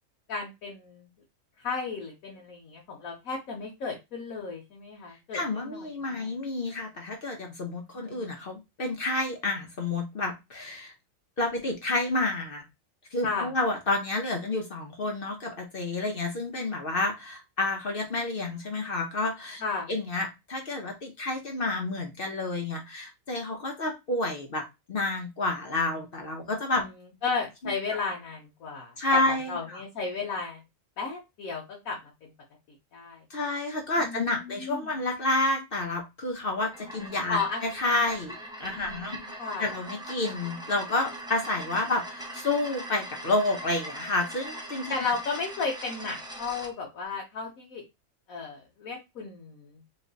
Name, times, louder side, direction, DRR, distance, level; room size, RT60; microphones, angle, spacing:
voice 1, 0.3-1.1 1.6-6.3 7.9-8.5 13.2-13.5 19.6-19.9 26.8-27.0 27.2-29.2 29.5-30.6 31.0-32.3 32.9-33.2 34.0-35.0 37.3-37.6 38.8-39.7 44.9-47.8 48.3-49.8, left 4 dB, 90° left, -1 dB, 1.3 m, -34 dB
voice 2, 5.3-10.9 11.4-12.6 13.1-19.6 19.9-26.8 27.6-27.7 29.0-29.8 33.3-39.2 39.6-45.0, left 2 dB, 50° left, 2 dB, 0.8 m, -30 dB
sound 1, 36.6-46.7, right 1 dB, 5° right, 0.4 m, -41 dB
3.1 x 2.2 x 3.8 m, 0.23 s
omnidirectional pair, 1.4 m